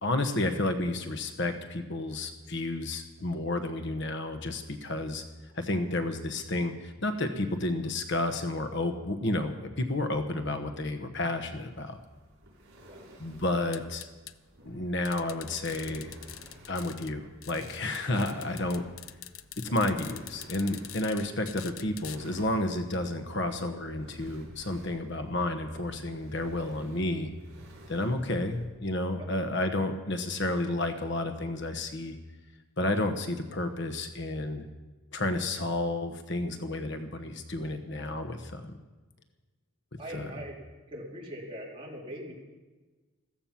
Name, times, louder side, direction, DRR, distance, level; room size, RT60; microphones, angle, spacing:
voice 1, 0.0-5.2 5.5-12.0 13.2-14.0 14.7-16.1 16.7-18.8 19.6-27.3 27.9-32.2 32.8-34.6 35.1-38.8 40.1-40.3, left 2 dB, 55° left, 7 dB, 1.1 m, -31 dB
sound 1, 11.7-28.7, right 1 dB, 70° right, 5.6 m, -54 dB
sound 2, 13.7-14.3 15.0-17.1 17.4-22.2, left 13 dB, 85° left, 0.6 m, -45 dB
voice 2, 40.0-40.6 40.9-42.3, equal, 25° right, -3 dB, 3.5 m, -41 dB
15.0 x 14.5 x 5.9 m, 1.2 s
head